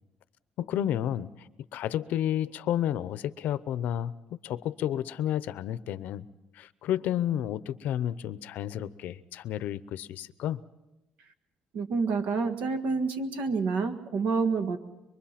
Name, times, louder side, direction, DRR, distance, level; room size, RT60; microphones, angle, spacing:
voice 1, 0.6-1.5 1.7-6.3 6.5-10.6, left 11 dB, 70° left, 16 dB, 0.7 m, -31 dB
voice 2, 11.7-14.8, right 4 dB, 65° right, 9 dB, 1.7 m, -28 dB
23.5 x 23.5 x 5.9 m, 0.98 s
cardioid pair, 145°, 3 cm